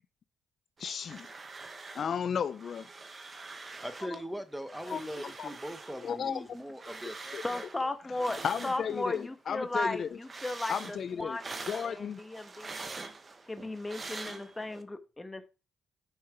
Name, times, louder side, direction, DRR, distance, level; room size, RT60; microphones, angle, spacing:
voice 1, 0.8-1.3 1.9-2.9 4.0-4.2 4.9-5.5 6.0-6.4 7.3-7.4 8.4-10.2 10.7-11.4 11.7-12.2, left 7 dB, 55° left, 0.4 m, -34 dB
sound 1, 0.8-2.2 2.4-4.2 4.6-9.3 9.6-14.8, right 3 dB, 30° right, 0.9 m, -45 dB
voice 2, 3.8-7.9, equal, 5° right, 0.9 m, -41 dB
voice 3, 7.4-8.4 8.6-11.4 11.8-12.9 13.5-15.5, left 2 dB, 15° left, 1.0 m, -36 dB
6.5 x 5.6 x 3.3 m
cardioid pair, 90°, 0 cm